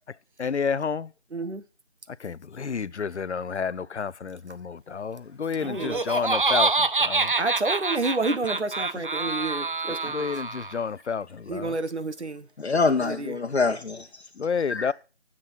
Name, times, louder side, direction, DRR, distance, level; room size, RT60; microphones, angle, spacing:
voice 1, 0.4-1.1 2.2-7.3 9.9-11.7 14.4-14.9, left 6 dB, 85° left, 0.6 m, -30 dB
voice 2, 1.3-1.6 5.6-6.0 7.4-10.3 11.5-12.5 13.0-13.3, right 3 dB, 80° right, 1.5 m, -29 dB
Laughter, 5.6-10.8, right 3 dB, 50° right, 0.5 m, -26 dB
voice 3, 12.6-14.2 14.7-14.9, left 4 dB, 70° left, 1.0 m, -25 dB
9.9 x 7.3 x 5.8 m
figure-of-eight pair, 170°, 34 cm